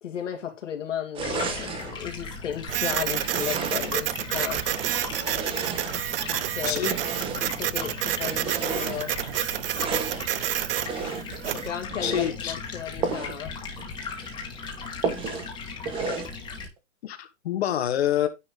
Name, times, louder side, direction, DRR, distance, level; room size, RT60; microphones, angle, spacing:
voice 1, 0.0-4.6 6.2-6.8 7.4-9.2 11.5-13.5, left 8 dB, 75° left, 2.4 m, -34 dB
sound 1, 1.1-2.0 3.1-4.1 4.6-6.3 6.9-7.6 8.1-9.0 9.7-10.3 10.8-11.4 11.9-12.4 13.0-13.4 13.8-13.9 14.2-14.3 15.0-15.5 15.9-16.4, right 5 dB, 15° right, 1.0 m, -32 dB
Stream, 1.2-16.7, left 4 dB, 10° left, 2.0 m, -37 dB
Printer, 2.7-11.7, right 13 dB, 50° right, 0.5 m, -29 dB
voice 2, 12.0-12.5 17.0-18.3, left 11 dB, 55° left, 1.7 m, -26 dB
10.0 x 4.3 x 3.7 m
hypercardioid pair, 150°, 37 cm